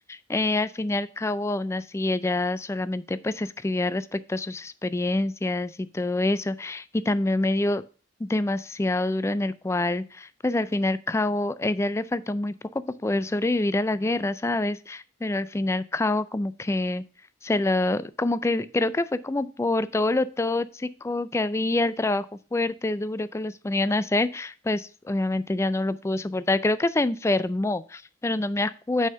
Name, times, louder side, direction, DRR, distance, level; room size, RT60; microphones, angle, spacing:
voice 1, 0.1-7.8 8.2-17.0 17.4-22.3 22.5-29.1, left 2 dB, 15° left, 16 dB, 0.3 m, -26 dB
6.3 x 5.5 x 5.5 m, 0.38 s
head